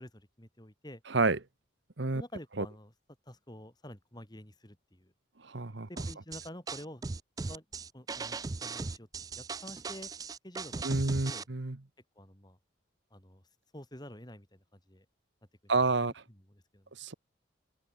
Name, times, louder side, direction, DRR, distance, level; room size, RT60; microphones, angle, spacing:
voice 1, 0.0-1.0 2.1-2.9 3.3-5.1 5.9-7.0 7.4-7.7 7.9-10.1 10.4-11.5 12.2-12.6 13.1-13.4 13.7-15.1 15.6-15.9 16.3-17.2, left 1 dB, 20° left, 5.3 m, -49 dB
voice 2, 5.4-5.9 10.8-11.8 15.7-16.2 17.0-17.1, right 3 dB, 60° right, 1.2 m, -29 dB
sound 1, 6.0-11.4, right 4 dB, 20° right, 0.3 m, -38 dB
open air
head